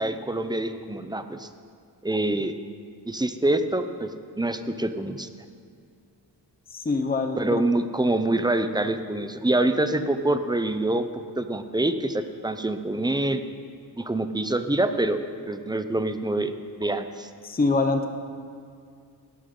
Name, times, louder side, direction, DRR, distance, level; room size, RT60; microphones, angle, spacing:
voice 1, 0.0-1.5 2.0-2.5 3.1-4.1 4.4-5.3 7.4-11.1 11.4-13.4 14.0-15.2 15.5-17.3, right 2 dB, 10° right, 9 dB, 0.6 m, -25 dB
voice 2, 6.7-7.6 17.4-18.1, left 3 dB, 20° left, 5 dB, 0.8 m, -24 dB
17.0 x 12.0 x 3.8 m, 2.3 s
wide cardioid pair, 130°, 41 cm